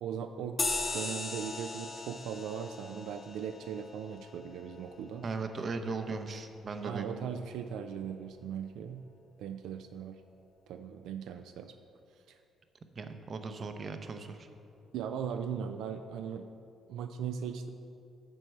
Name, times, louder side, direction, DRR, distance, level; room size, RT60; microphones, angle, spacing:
voice 1, 0.0-0.6 0.9-5.3 6.1-6.2 6.8-9.0 9.4-10.2 10.7-11.8 12.3-12.4 14.9-16.5 16.9-17.7, right 7 dB, 85° right, 7 dB, 0.3 m, -38 dB
sound 1, 0.6-5.5, left 3 dB, 35° left, 0.9 m, -38 dB
voice 2, 5.2-7.3 13.0-14.5, right 4 dB, 45° right, 8 dB, 0.6 m, -38 dB
7.7 x 4.5 x 6.4 m, 2.6 s
cardioid pair, 90°, 0 cm